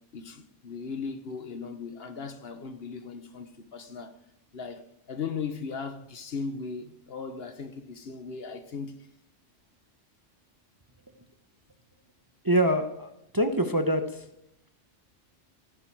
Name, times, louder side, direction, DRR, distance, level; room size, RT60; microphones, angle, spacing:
voice 1, 0.1-4.2 4.5-9.1, left 5 dB, 60° left, 1.2 m, -37 dB
voice 2, 12.4-14.2, right 1 dB, 20° right, 0.8 m, -25 dB
16.0 x 9.7 x 4.7 m
omnidirectional pair, 1.2 m